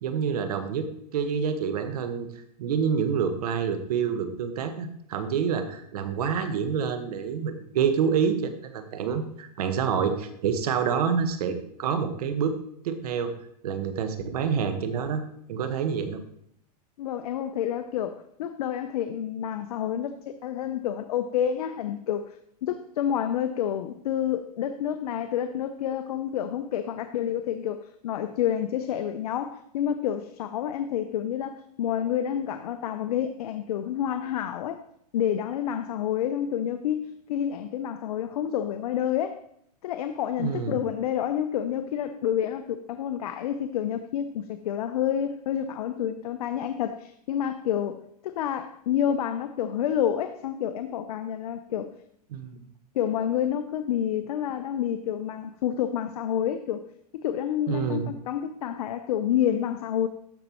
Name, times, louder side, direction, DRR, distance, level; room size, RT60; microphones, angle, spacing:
voice 1, 0.0-2.3 2.6-12.6 12.8-13.3 13.6-15.2 15.5-16.2 40.4-40.8 52.3-52.6 57.7-58.1, right 7 dB, 65° right, 9 dB, 1.2 m, -27 dB
voice 2, 17.0-22.4 22.6-34.8 35.1-39.4 39.8-48.0 48.2-51.9 52.9-56.8 57.1-60.1, left 10 dB, 65° left, 9 dB, 0.6 m, -29 dB
13.0 x 5.3 x 2.9 m, 0.72 s
supercardioid pair, 155°, 21 cm